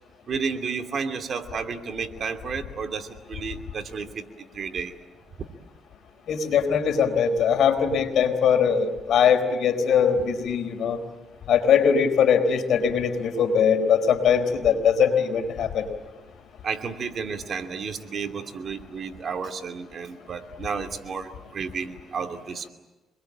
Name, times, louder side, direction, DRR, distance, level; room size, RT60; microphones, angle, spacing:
voice 1, 0.3-4.2 4.5-4.9 16.6-22.7, right 5 dB, 50° right, 6 dB, 2.7 m, -32 dB
voice 2, 6.3-11.0 11.5-15.9, left 7 dB, 70° left, 7 dB, 4.2 m, -21 dB
27.5 x 21.5 x 8.8 m, 1.1 s
cardioid pair, 90°, 0 cm